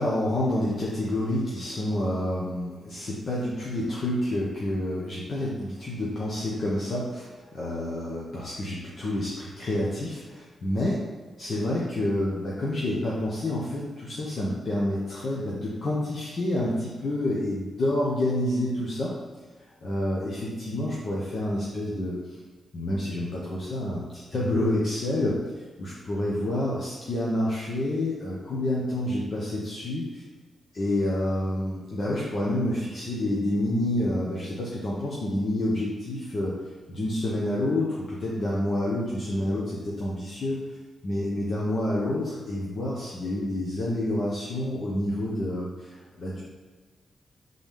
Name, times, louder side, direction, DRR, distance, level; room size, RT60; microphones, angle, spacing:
voice 1, 0.0-11.0 11.4-19.1 19.8-22.4 22.7-30.2 30.7-36.6 36.9-40.6 41.0-46.4, left 1 dB, 40° left, -5 dB, 0.9 m, -28 dB
7.4 x 3.9 x 3.5 m, 1.4 s
wide cardioid pair, 175°, 0 cm